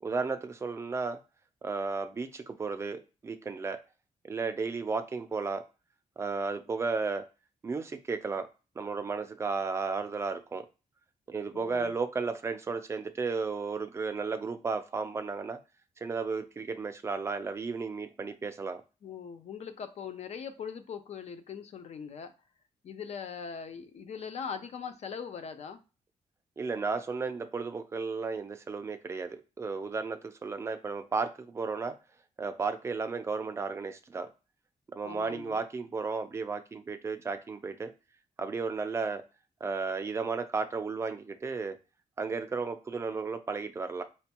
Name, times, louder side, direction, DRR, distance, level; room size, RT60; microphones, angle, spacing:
voice 1, 0.0-1.2 1.6-3.8 4.2-5.6 6.2-7.2 7.6-8.5 8.8-10.7 11.3-15.6 16.0-18.8 26.6-32.0 32.4-34.3 34.9-37.9 38.4-39.2 39.6-41.8 42.2-44.0, right 4 dB, 20° right, 8 dB, 0.3 m, -34 dB
voice 2, 11.5-11.9 19.0-22.3 22.8-25.8 35.0-35.6, left 6 dB, 50° left, 9 dB, 0.4 m, -41 dB
4.3 x 2.2 x 2.8 m, 0.31 s
wide cardioid pair, 175°, 14 cm